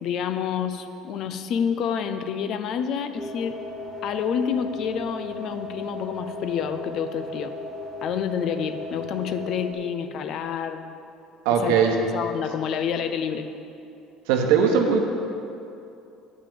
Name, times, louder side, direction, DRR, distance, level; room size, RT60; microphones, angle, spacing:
voice 1, 0.0-3.6 4.0-7.5 8.0-10.8 11.5-11.8 12.1-13.5, left 7 dB, 60° left, 9 dB, 0.6 m, -28 dB
sound 1, 3.1-9.7, left 2 dB, 35° left, 1.2 m, -36 dB
voice 2, 11.4-11.9 14.3-15.0, right 7 dB, 80° right, 3 dB, 1.1 m, -19 dB
8.6 x 6.2 x 7.0 m, 2.7 s
supercardioid pair, 90°, 0 cm